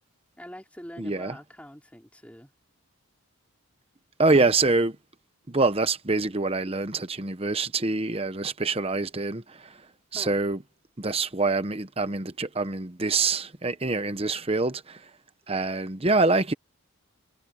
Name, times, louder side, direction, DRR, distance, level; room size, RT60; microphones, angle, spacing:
voice 1, 0.4-2.5 10.1-10.4, equal, 5° left, 4.5 m, -44 dB
voice 2, 1.0-1.4 4.2-5.0 5.5-9.8 10.1-10.6 11.0-15.1 15.5-16.5, right 3 dB, 25° right, 0.9 m, -25 dB
head